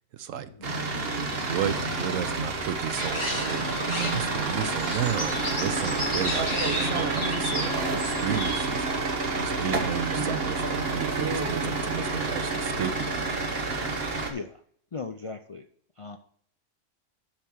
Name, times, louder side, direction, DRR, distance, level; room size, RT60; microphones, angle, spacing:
voice 1, 0.1-0.5 1.3-3.7 4.0-8.9 9.4-13.3, right 9 dB, 85° right, 12 dB, 1.1 m, -33 dB
sound 1, 0.6-14.3, right 3 dB, 50° right, 1.5 m, -29 dB
sound 2, 2.9-8.6, left 1 dB, 20° left, 2.5 m, -33 dB
voice 2, 14.0-14.6 14.9-15.6 16.0-16.2, left 4 dB, 60° left, 7 dB, 0.3 m, -38 dB
7.4 x 5.7 x 6.3 m, 0.63 s
omnidirectional pair, 1.3 m